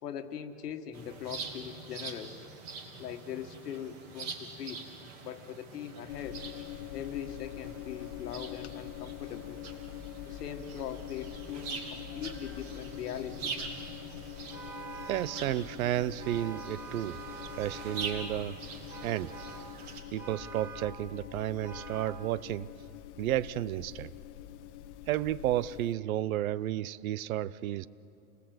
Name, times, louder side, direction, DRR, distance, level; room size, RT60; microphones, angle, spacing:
voice 1, 0.0-2.5 3.0-4.8 5.2-6.4 6.9-9.6 10.3-13.6, left 9 dB, 90° left, 7 dB, 1.8 m, -41 dB
sound 1, 0.9-20.0, right 4 dB, 35° right, 2.9 m, -44 dB
sound 2, 6.1-25.9, left 13 dB, 45° left, 1.0 m, -45 dB
Vehicle horn car horn honking, 14.5-15.4 16.2-18.4 18.9-19.7 20.2-21.0 21.6-22.2, right 5 dB, 5° right, 2.1 m, -45 dB
voice 2, 15.0-17.2 17.6-18.6 19.0-19.3 20.1-22.7 23.2-24.1 25.1-27.9, right 13 dB, 65° right, 19 dB, 0.7 m, -32 dB
28.5 x 20.0 x 7.9 m, 2.9 s
supercardioid pair, 165°, 45 cm